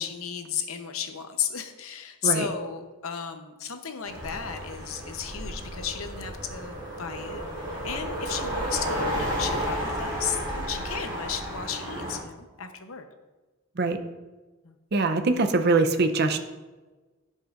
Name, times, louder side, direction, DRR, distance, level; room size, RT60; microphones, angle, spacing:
voice 1, 0.0-7.4 7.7-13.1 14.6-14.8, left 8 dB, 85° left, 7 dB, 0.8 m, -34 dB
sound 1, 4.1-12.2, equal, 20° right, 2.1 m, -32 dB
voice 2, 14.9-16.4, right 3 dB, 50° right, 8 dB, 0.6 m, -23 dB
16.0 x 5.4 x 2.5 m, 1.3 s
head